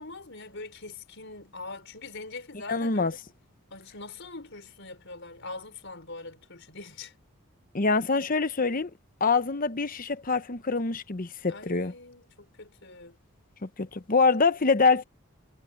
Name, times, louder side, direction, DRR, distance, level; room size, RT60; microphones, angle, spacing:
voice 1, 0.0-3.2 3.7-7.1 11.5-13.2, left 3 dB, 55° left, 5.8 m, -43 dB
voice 2, 2.7-3.1 7.7-8.9 9.2-11.9 13.6-15.0, left 4 dB, 40° left, 0.9 m, -25 dB
head